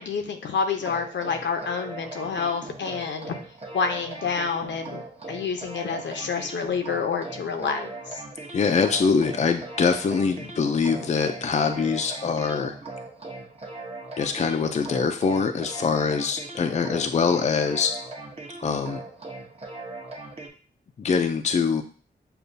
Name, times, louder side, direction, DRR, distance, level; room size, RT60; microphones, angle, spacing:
voice 1, 0.0-3.3 3.7-5.0 5.3-8.2, left 5 dB, 80° left, 5 dB, 0.7 m, -28 dB
sound 1, 0.8-20.5, right 2 dB, 35° right, 0.9 m, -39 dB
voice 2, 8.5-12.7 14.2-17.9 18.6-19.0 21.0-21.8, left 5 dB, 40° left, 6 dB, 0.4 m, -23 dB
6.6 x 2.3 x 2.6 m, 0.40 s
cardioid pair, 80°, 19 cm